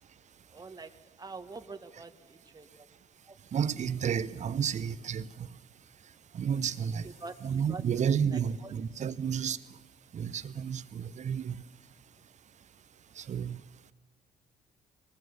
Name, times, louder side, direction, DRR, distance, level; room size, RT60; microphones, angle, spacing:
voice 1, 0.5-0.9 1.2-2.9 3.2-3.3 7.2-7.4 7.7-7.8 8.3-8.7 9.0-9.1, right 4 dB, 20° right, 1.5 m, -45 dB
voice 2, 3.5-5.3 6.3-7.1 7.4-9.6 10.1-11.6 13.2-13.6, right 7 dB, 40° right, 0.8 m, -31 dB
sound 1, 6.5-10.1 10.8-10.9, left 2 dB, 80° left, 6.3 m, -65 dB
22.0 x 20.0 x 7.0 m
figure-of-eight pair, 50°, 19 cm